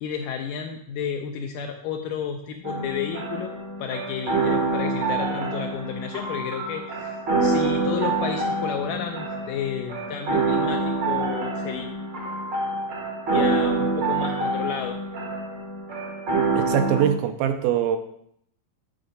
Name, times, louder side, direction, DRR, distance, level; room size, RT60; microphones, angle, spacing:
voice 1, 0.0-3.5 3.8-11.9 13.3-15.0, left 8 dB, 85° left, 4 dB, 1.9 m, -32 dB
sound 1, 2.6-17.0, right 3 dB, 65° right, 1.1 m, -26 dB
voice 2, 16.5-18.0, right 9 dB, 80° right, 8 dB, 2.2 m, -23 dB
8.9 x 3.9 x 5.3 m, 0.69 s
omnidirectional pair, 4.3 m